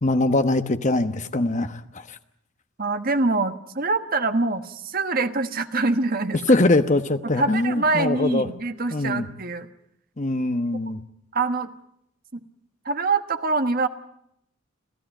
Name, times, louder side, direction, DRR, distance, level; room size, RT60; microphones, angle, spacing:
voice 1, 0.0-2.2 6.5-8.5 8.9-9.3 10.2-11.0, left 2 dB, 35° left, 9 dB, 1.1 m, -22 dB
voice 2, 2.8-6.4 7.4-9.7 10.9-11.0 11.3-11.7 12.8-13.9, right 3 dB, 45° right, 9 dB, 1.3 m, -24 dB
27.0 x 15.5 x 8.9 m, 0.77 s
head